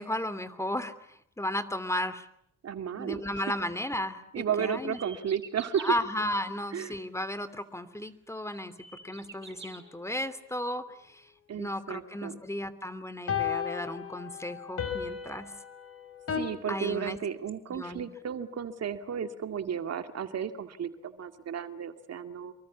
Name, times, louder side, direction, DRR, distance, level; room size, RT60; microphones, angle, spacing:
voice 1, 0.0-2.3 2.9-5.0 5.8-8.7 9.0-15.5 16.7-17.2 17.7-18.1, left 1 dB, 10° left, 13 dB, 2.8 m, -34 dB
voice 2, 2.6-3.4 4.3-5.9 6.7-6.9 11.5-12.4 16.4-22.5, right 8 dB, 55° right, 8 dB, 2.3 m, -33 dB
sound 1, 4.8-6.0 7.7-7.8 8.3-9.8, right 5 dB, 40° right, 6.5 m, -47 dB
sound 2, 9.0-9.1 13.3-16.4, left 8 dB, 50° left, 5.7 m, -34 dB
27.5 x 23.5 x 8.4 m, 0.72 s
cardioid pair, 90°, 30 cm